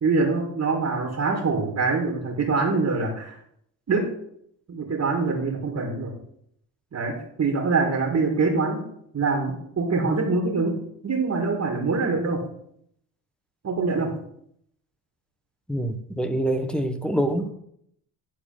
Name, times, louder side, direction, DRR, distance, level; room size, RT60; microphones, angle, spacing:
voice 1, 0.0-3.4 3.9-4.1 4.7-6.1 6.9-8.8 9.1-10.8 11.0-12.4 13.6-14.1, right 4 dB, 35° right, 1 dB, 2.5 m, -24 dB
voice 2, 15.7-17.5, right 1 dB, ahead, 7 dB, 1.2 m, -25 dB
11.0 x 4.2 x 6.0 m, 0.71 s
supercardioid pair, 75°, 44 cm